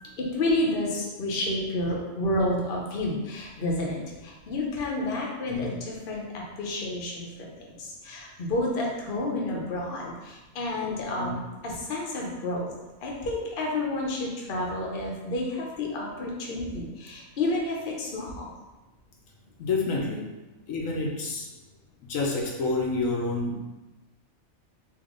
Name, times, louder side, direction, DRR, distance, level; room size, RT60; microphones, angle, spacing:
voice 1, 0.2-7.5 7.8-12.7 13.0-18.4, left 2 dB, 50° left, -2 dB, 0.9 m, -30 dB
voice 2, 19.6-20.3 20.7-21.5 22.0-23.6, left 3 dB, 85° left, -2 dB, 1.1 m, -28 dB
3.6 x 2.9 x 3.7 m, 1.1 s
omnidirectional pair, 1.4 m